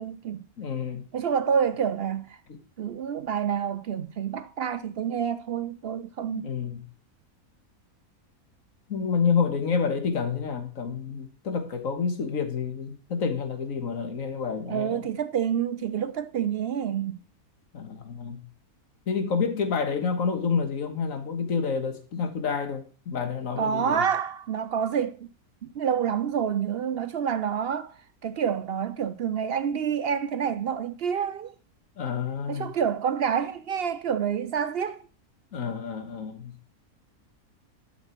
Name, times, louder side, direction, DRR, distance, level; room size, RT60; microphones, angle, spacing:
voice 1, 0.0-0.5 1.1-2.4 2.8-6.5 14.7-17.2 23.6-25.3 25.6-27.9 28.2-31.5 32.5-35.0, right 8 dB, 65° right, 0.6 m, -28 dB
voice 2, 0.6-1.1 2.5-2.6 6.3-6.9 8.9-15.1 17.7-18.4 19.1-24.1 32.0-32.7 35.5-36.5, left 5 dB, 60° left, 1.8 m, -29 dB
12.0 x 6.0 x 4.5 m
omnidirectional pair, 1.6 m